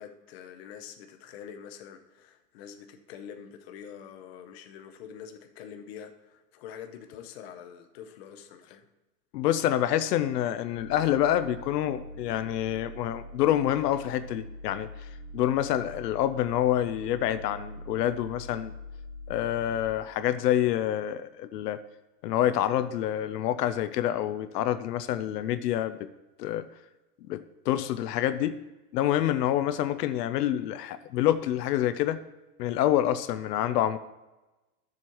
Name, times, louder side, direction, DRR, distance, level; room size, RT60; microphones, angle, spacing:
voice 1, 0.0-8.9, left 8 dB, 40° left, 6 dB, 0.8 m, -45 dB
voice 2, 9.3-18.7 19.3-21.8 22.2-26.1 26.4-26.7 27.2-28.6 28.9-32.2 32.6-34.0, left 12 dB, 80° left, 11 dB, 0.7 m, -27 dB
sound 1, 10.8-19.9, equal, 25° left, 1.3 m, -43 dB
12.0 x 7.4 x 3.0 m, 1.1 s
supercardioid pair, 175°, 48 cm